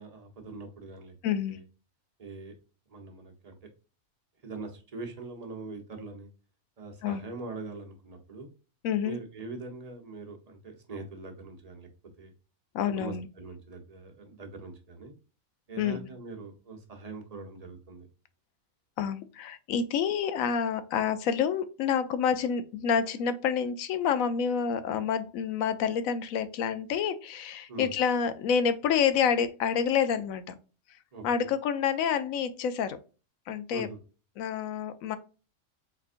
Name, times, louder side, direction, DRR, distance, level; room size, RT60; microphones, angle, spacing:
voice 1, 0.0-1.1 1.5-1.6 2.2-2.5 2.9-3.6 4.4-6.3 6.8-8.5 9.0-11.9 12.2-12.3 13.0-15.1 15.7-18.1 27.7-27.9 31.1-31.5 33.7-34.0, right 3 dB, 30° right, 2 dB, 0.9 m, -42 dB
voice 2, 1.2-1.6 7.0-7.2 8.8-9.2 12.7-13.3 15.8-16.1 19.0-30.5 31.2-33.0 33.5-33.9 34.4-35.2, left 7 dB, 70° left, 13 dB, 1.0 m, -28 dB
4.4 x 3.8 x 2.4 m, 0.34 s
omnidirectional pair, 1.5 m